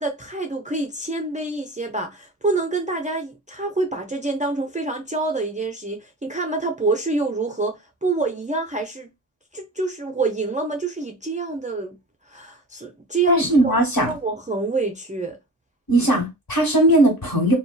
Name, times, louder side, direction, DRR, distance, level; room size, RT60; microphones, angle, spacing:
voice 1, 0.0-9.1 9.5-12.0 12.3-13.8 14.0-15.4, right 3 dB, 20° right, 0.4 m, -26 dB
voice 2, 13.3-14.1 15.9-17.5, right 1 dB, 50° left, 1.4 m, -18 dB
2.5 x 2.2 x 2.2 m
wide cardioid pair, 45°, 44 cm